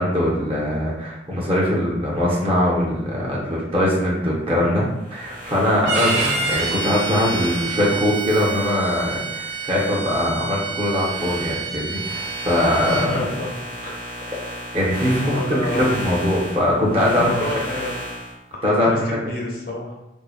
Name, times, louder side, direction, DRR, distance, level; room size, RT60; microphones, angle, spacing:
voice 1, 0.0-4.8 5.1-13.2 14.7-17.5 18.6-19.2, left 1 dB, 30° right, -4 dB, 0.6 m, -21 dB
sound 1, 5.0-10.1 10.5-18.3, equal, 65° right, 1.0 m, -34 dB
Bowed string instrument, 5.8-13.1, right 4 dB, 90° right, 0.4 m, -28 dB
voice 2, 13.1-13.5 13.8-14.0 15.2-16.1 17.2-18.0 18.5-20.0, left 1 dB, 55° left, -1 dB, 0.5 m, -30 dB
2.6 x 2.0 x 2.3 m, 0.90 s
head